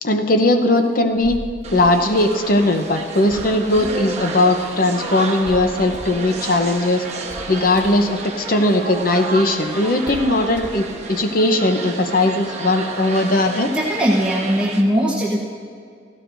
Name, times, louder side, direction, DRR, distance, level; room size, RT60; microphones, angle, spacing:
voice 1, 0.0-1.4 1.7-7.0 7.5-13.7, left 1 dB, 50° left, 6 dB, 0.8 m, -18 dB
Hands, 1.0-11.2, equal, 30° left, 3.0 m, -40 dB
sound 1, 1.6-14.8, right 3 dB, 40° right, 1.2 m, -31 dB
voice 2, 13.7-15.4, equal, 5° right, -6 dB, 1.0 m, -19 dB
17.0 x 15.0 x 2.6 m, 2.2 s
head